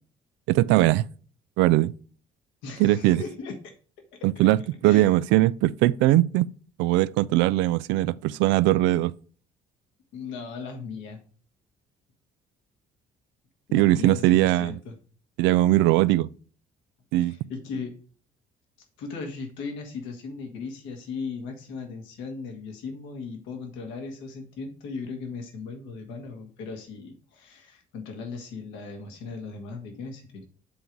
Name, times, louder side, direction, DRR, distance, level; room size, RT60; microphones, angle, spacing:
voice 1, 0.5-1.1 1.6-1.9 2.8-3.2 4.2-6.5 6.8-9.1 13.7-14.8 15.4-16.3 17.1-17.4, right 16 dB, 75° right, 0.4 m, -20 dB
voice 2, 2.6-3.5 4.8-5.1 10.1-11.2 13.7-15.0 17.2-17.9 19.0-30.5, left 4 dB, 75° left, 1.8 m, -37 dB
7.8 x 3.9 x 4.6 m
hypercardioid pair, 55°, 19 cm